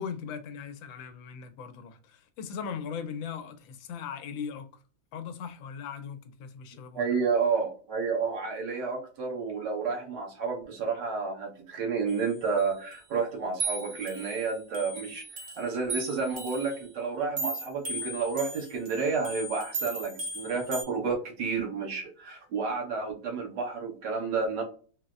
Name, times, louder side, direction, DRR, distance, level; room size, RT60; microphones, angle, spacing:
voice 1, 0.0-4.7 5.1-7.1, left 7 dB, 85° left, 1.3 m, -39 dB
voice 2, 6.9-15.3 15.5-24.6, right 5 dB, 70° right, 1.7 m, -30 dB
sound 1, 12.1-12.6 12.9-13.0 13.6-16.8 17.4-20.8, right 2 dB, 40° right, 1.0 m, -37 dB
3.9 x 2.1 x 2.4 m
omnidirectional pair, 2.1 m